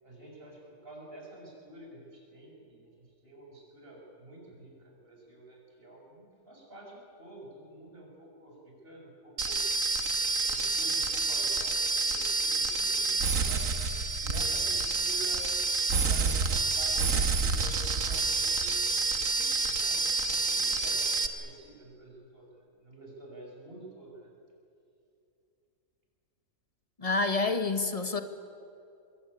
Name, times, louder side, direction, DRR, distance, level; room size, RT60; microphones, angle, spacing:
voice 1, 0.0-9.6 10.5-13.7 14.2-15.5 16.0-18.8 19.1-24.3, right 2 dB, 40° right, -2 dB, 7.3 m, -49 dB
sound 1, 9.4-21.3, right 4 dB, 65° right, 1.8 m, -28 dB
voice 2, 27.0-28.2, left 3 dB, 25° left, 8 dB, 1.4 m, -28 dB
25.0 x 21.5 x 9.8 m, 2.6 s
omnidirectional pair, 1.5 m